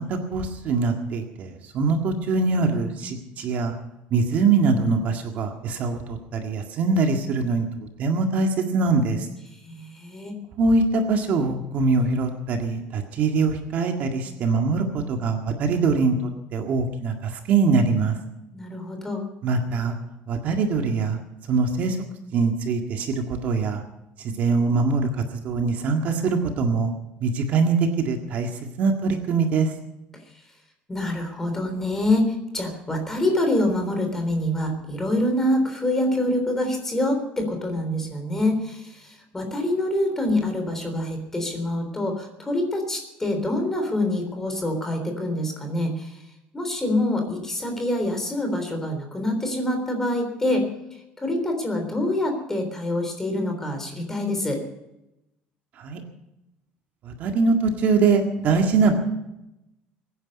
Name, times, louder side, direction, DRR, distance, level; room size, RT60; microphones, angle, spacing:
voice 1, 0.0-3.7 4.1-9.3 10.6-16.2 16.5-18.2 19.4-20.0 20.3-21.2 21.5-22.0 22.3-23.8 24.2-25.1 25.4-26.9 27.2-28.5 28.8-29.7 55.8-56.0 57.0-59.0, right 4 dB, 45° right, 4 dB, 1.9 m, -23 dB
voice 2, 9.7-10.3 18.5-19.3 30.9-46.2 46.5-50.7 51.2-54.6, left 1 dB, 10° left, 4 dB, 3.6 m, -26 dB
23.5 x 10.0 x 5.3 m, 0.89 s
cardioid pair, 170°, 4 cm